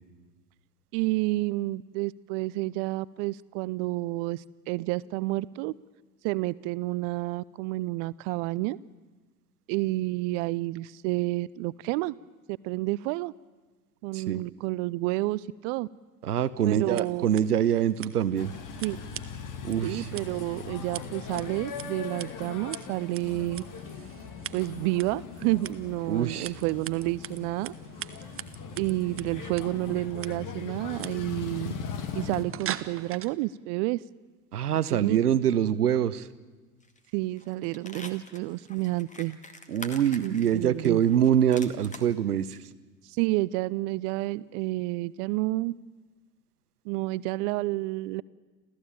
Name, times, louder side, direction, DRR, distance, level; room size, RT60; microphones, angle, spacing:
voice 1, 0.9-5.7 6.2-8.8 9.7-12.1 12.6-13.3 14.0-15.9 16.6-17.3 18.8-19.1 19.8-23.6 24.5-27.7 28.8-31.7 32.1-34.0 34.9-35.2 37.1-39.4 40.2-41.0 43.0-45.7 46.8-48.2, right 20 dB, 55° right, 20 dB, 0.7 m, -30 dB
voice 2, 16.2-18.5 19.6-20.1 26.1-26.5 34.5-36.3 39.7-42.6, right 9 dB, 85° right, 16 dB, 0.9 m, -25 dB
Scissors, 16.8-33.3, right 10 dB, 30° right, 1.0 m, -44 dB
sound 1, 18.4-32.4, left 6 dB, 45° left, 2.4 m, -40 dB
sound 2, 36.8-37.1 37.4-42.1 42.5-42.6, left 2 dB, 15° left, 2.3 m, -45 dB
28.0 x 15.0 x 8.7 m, 1.3 s
figure-of-eight pair, 75°, 45 cm